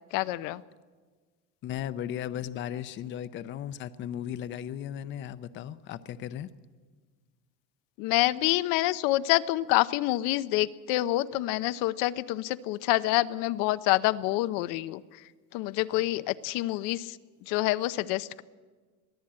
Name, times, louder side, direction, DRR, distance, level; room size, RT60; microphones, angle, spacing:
voice 1, 0.1-0.6 8.0-15.0 15.5-17.2 17.5-18.4, left 17 dB, 80° left, 13 dB, 0.7 m, -27 dB
voice 2, 1.6-6.5, left 10 dB, 35° left, 14 dB, 0.6 m, -36 dB
22.5 x 14.5 x 8.7 m, 1.4 s
cardioid pair, 165°, 33 cm